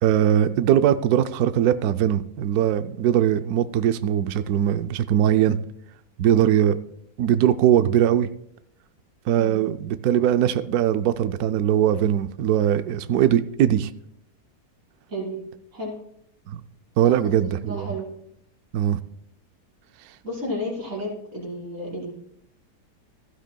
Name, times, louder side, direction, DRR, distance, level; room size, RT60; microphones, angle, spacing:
voice 1, 0.0-5.6 6.2-6.8 7.2-8.3 9.3-13.9 16.5-16.6 17.0-17.9 18.7-19.0, right 10 dB, 70° right, 10 dB, 1.0 m, -21 dB
voice 2, 15.1-15.4 15.7-16.0 17.0-17.1 17.4-18.1 20.2-22.1, equal, 50° right, -7 dB, 5.5 m, -32 dB
16.5 x 12.0 x 2.2 m, 0.71 s
omnidirectional pair, 1.7 m